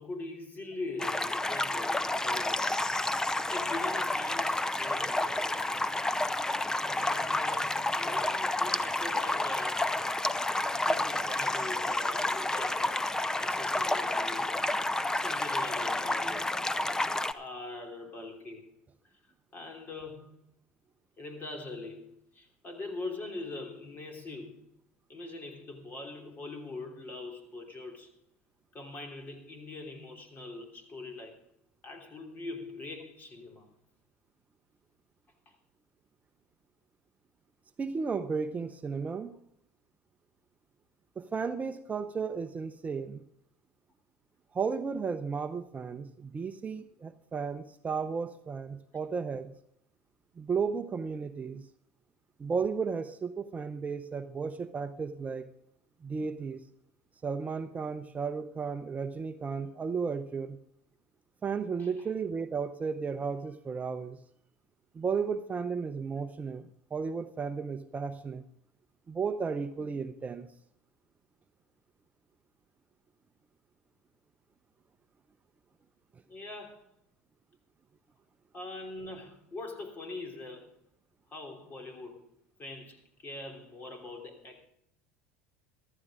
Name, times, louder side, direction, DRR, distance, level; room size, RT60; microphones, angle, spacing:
voice 1, 0.0-2.8 3.5-5.8 6.9-9.9 10.7-13.0 13.4-14.6 15.1-16.5 17.3-18.7 19.0-19.1 19.5-20.4 21.2-24.6 25.1-28.2 28.7-31.4 31.8-33.7 35.5-35.6 61.8-62.1 76.3-76.9 78.5-80.7 81.3-84.7, left 2 dB, 30° left, 3.2 m, -43 dB
sound 1, 1.0-17.3, left 2 dB, 10° left, 0.6 m, -30 dB
voice 2, 37.8-39.4 41.2-43.2 44.5-49.5 50.4-51.7 52.4-55.5 56.0-56.6 57.2-60.6 61.4-64.2 64.9-68.4 69.1-70.5, right 5 dB, 25° right, 0.7 m, -34 dB
14.5 x 13.5 x 3.7 m
hypercardioid pair, 90°, 6 cm